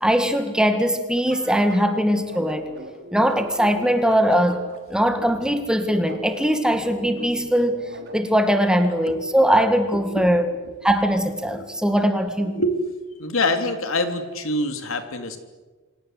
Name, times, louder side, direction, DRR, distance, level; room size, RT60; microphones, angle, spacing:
voice 1, 0.0-2.7 3.1-4.6 4.9-7.8 8.1-10.4 10.8-12.5, equal, 5° right, 8 dB, 1.8 m, -20 dB
sound 1, 1.1-9.3, right 1 dB, 50° right, 3.8 m, -40 dB
voice 2, 9.9-10.6 11.5-11.7 12.4-12.8 13.2-15.4, left 1 dB, 75° left, 7 dB, 3.2 m, -26 dB
29.0 x 25.0 x 8.1 m, 1.3 s
head